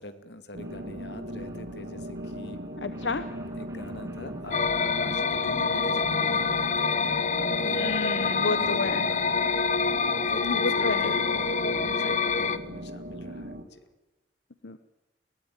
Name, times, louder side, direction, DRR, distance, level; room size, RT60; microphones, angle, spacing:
voice 1, 0.0-2.6 3.5-9.7 10.0-13.8, left 1 dB, 70° left, 9 dB, 2.3 m, -43 dB
sound 1, 0.5-13.6, equal, 75° right, 2.6 m, -38 dB
sound 2, 0.6-9.1 9.7-9.8 10.1-10.2 10.4-10.5 10.8-10.9 11.2-11.3 12.0-12.1 12.4-12.5 12.7-12.8 13.1-13.2 13.5-13.6, right 1 dB, 20° right, 3.0 m, -49 dB
voice 2, 2.8-3.3 7.7-9.1 10.4-11.1 14.6-14.8, left 3 dB, 85° left, 11 dB, 1.1 m, -31 dB
sound 3, 4.5-12.6, left 5 dB, 45° left, 1.0 m, -26 dB
22.5 x 17.5 x 9.2 m, 1.1 s
head